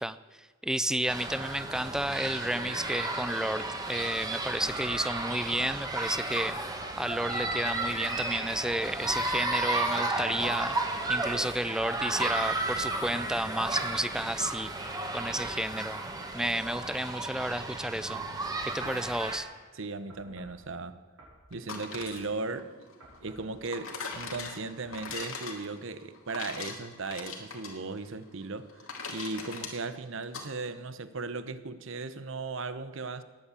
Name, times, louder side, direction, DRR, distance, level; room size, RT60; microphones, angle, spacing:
voice 1, 0.0-6.6 7.0-10.8 11.1-14.7 15.1-16.0 16.3-18.2 18.6-19.5, right 1 dB, 5° right, 0.4 m, -32 dB
sound 1, 1.1-19.4, right 2 dB, 20° right, 1.7 m, -33 dB
voice 2, 19.7-21.0 21.5-22.9 23.2-28.8 29.1-33.2, right 3 dB, 65° right, 0.9 m, -37 dB
sound 2, 20.1-20.6 21.2-22.5 23.0-23.5 24.0-24.3 24.8-25.0 25.7-25.8, right 1 dB, 85° right, 5.8 m, -54 dB
sound 3, 21.5-30.5, left 4 dB, 75° left, 2.4 m, -42 dB
19.0 x 8.3 x 8.4 m
head